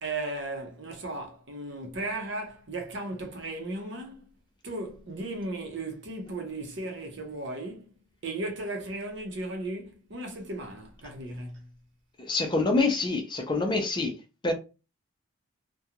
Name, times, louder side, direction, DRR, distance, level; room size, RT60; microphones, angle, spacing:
voice 1, 0.0-4.3 4.6-7.9 8.2-11.7, right 2 dB, 60° right, 0.7 m, -36 dB
voice 2, 12.2-14.1 14.4-14.5, left 3 dB, 20° left, 0.5 m, -26 dB
2.4 x 2.2 x 2.8 m
head